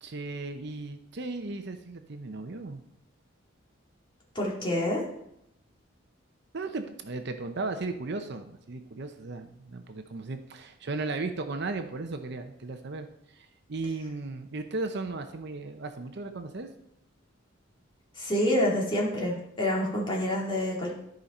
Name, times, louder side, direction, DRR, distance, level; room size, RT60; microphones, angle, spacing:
voice 1, 0.0-2.8 6.5-16.7, right 3 dB, 55° right, 7 dB, 0.7 m, -36 dB
voice 2, 4.3-5.0 18.2-20.9, left 1 dB, 25° left, -3 dB, 2.3 m, -27 dB
13.5 x 5.2 x 4.2 m, 0.79 s
head